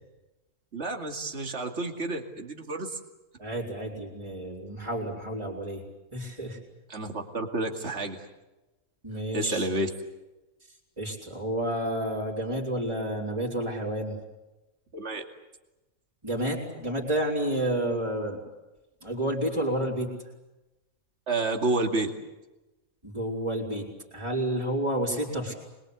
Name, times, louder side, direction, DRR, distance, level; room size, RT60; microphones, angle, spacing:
voice 1, 0.7-3.0 6.9-8.3 9.3-9.9 14.9-15.2 21.3-22.1, right 2 dB, 50° right, 3 dB, 2.6 m, -30 dB
voice 2, 3.4-5.8 6.1-6.6 9.0-9.7 11.0-14.2 16.2-18.4 19.0-20.1 23.0-25.5, right 1 dB, 20° right, -5 dB, 4.7 m, -30 dB
25.5 x 22.5 x 8.2 m, 1.0 s
omnidirectional pair, 1.5 m